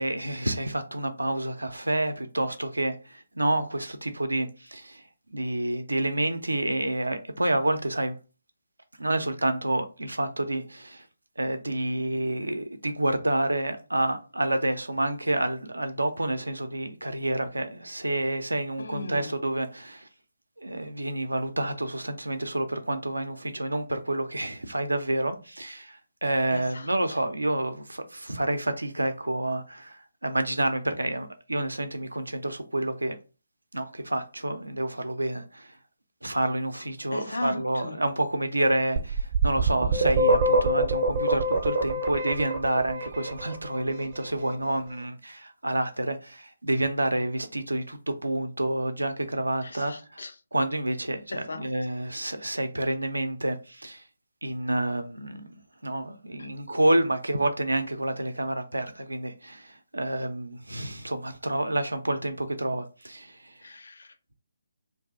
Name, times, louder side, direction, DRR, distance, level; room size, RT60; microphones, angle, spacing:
voice 1, 0.0-5.0 5.3-8.2 9.0-11.1 11.4-20.1 20.6-33.2 33.7-35.7 36.2-50.2 50.5-54.0 54.4-55.5 55.8-63.5, right 1 dB, 85° right, 0.5 m, -29 dB
voice 2, 18.8-19.3 26.5-27.2 37.1-38.0 49.6-50.3 51.3-51.6 63.6-64.3, left 2 dB, 65° left, 0.5 m, -37 dB
sound 1, 39.0-43.8, right 2 dB, 40° right, 0.6 m, -24 dB
2.6 x 2.4 x 3.5 m
figure-of-eight pair, 145°, 0 cm